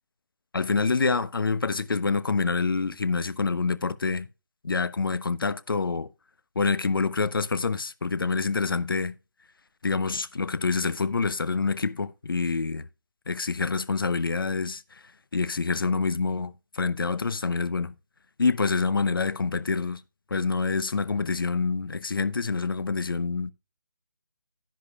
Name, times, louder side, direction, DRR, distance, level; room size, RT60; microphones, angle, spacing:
voice 1, 0.5-4.3 4.6-6.1 6.6-9.2 9.8-12.9 13.3-15.0 15.3-17.9 18.4-20.0 20.3-23.5, left 4 dB, 75° left, 0.7 m, -26 dB
11.0 x 10.5 x 2.3 m
figure-of-eight pair, 160°, 12 cm